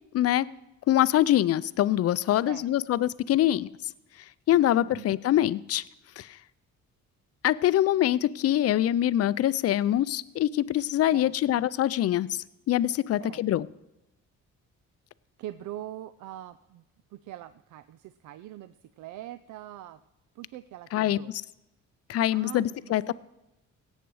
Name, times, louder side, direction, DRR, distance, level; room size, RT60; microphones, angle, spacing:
voice 1, 0.1-0.5 0.9-3.7 4.5-5.8 6.2-6.3 7.4-13.7 20.9-21.4 22.1-23.1, left 12 dB, 55° left, 19 dB, 0.4 m, -24 dB
voice 2, 4.5-5.1 11.1-11.4 13.2-13.4 15.4-16.8 17.1-20.0 20.4-21.3 22.3-23.1, right 13 dB, 75° right, 13 dB, 0.5 m, -43 dB
17.5 x 8.2 x 4.7 m, 0.93 s
cardioid pair, 90°, 30 cm